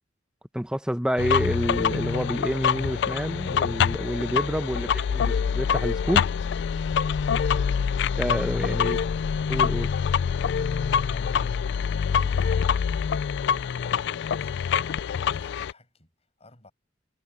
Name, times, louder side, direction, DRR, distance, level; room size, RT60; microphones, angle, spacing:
voice 1, 0.5-6.3 8.2-9.0 9.5-9.9, equal, 5° right, 0.8 m, -28 dB
sound 1, 1.2-15.7, left 7 dB, 65° left, 0.3 m, -25 dB
voice 2, 6.2-7.1 8.9-9.0 10.7-16.7, left 1 dB, 35° left, 5.5 m, -54 dB
head